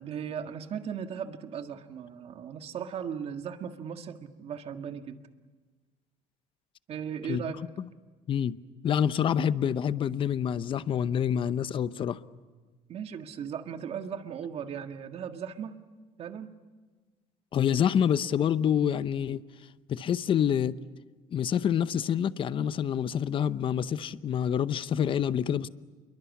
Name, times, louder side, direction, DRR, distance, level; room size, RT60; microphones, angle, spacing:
voice 1, 0.0-5.2 6.9-7.6 12.9-15.7 16.2-16.5, right 8 dB, 50° right, 1.7 m, -37 dB
voice 2, 7.3-7.9 8.3-8.6 8.8-12.2 17.5-19.4 19.9-20.7 21.3-25.7, left 8 dB, 40° left, 0.8 m, -27 dB
27.5 x 22.5 x 8.4 m
cardioid pair, 125°, 13 cm